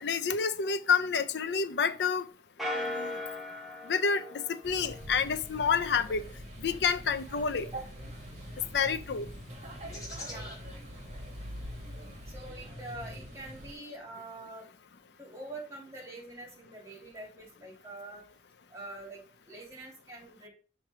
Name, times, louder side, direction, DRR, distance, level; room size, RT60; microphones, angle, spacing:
voice 1, 0.0-2.3 2.7-3.2 3.8-6.2 6.6-7.7 8.7-9.3, left 6 dB, 75° left, 0.5 m, -29 dB
sound 1, 2.6-5.3, left 1 dB, ahead, 1.1 m, -38 dB
sound 2, 4.6-13.7, equal, 40° right, 1.6 m, -44 dB
sound 3, 7.1-13.3, left 2 dB, 20° left, 2.2 m, -52 dB
voice 2, 12.3-14.7 15.2-18.2 18.7-20.5, right 2 dB, 15° right, 2.5 m, -44 dB
5.9 x 3.3 x 5.5 m
head